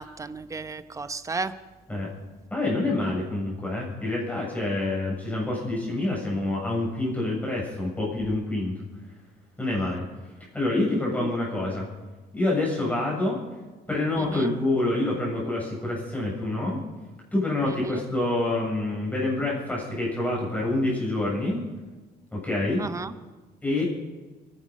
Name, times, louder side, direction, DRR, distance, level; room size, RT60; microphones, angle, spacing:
voice 1, 0.0-1.5 11.2-11.3 14.1-14.5 17.6-17.9 22.8-23.1, right 4 dB, 20° right, 12 dB, 0.9 m, -34 dB
voice 2, 2.5-8.7 9.6-10.0 10.5-11.9 12.3-13.4 13.9-16.8 17.3-21.7 22.3-22.8 23.6-23.8, left 2 dB, 10° left, -4 dB, 7.3 m, -27 dB
23.0 x 11.0 x 5.4 m, 1.2 s
cardioid pair, 110°, 17 cm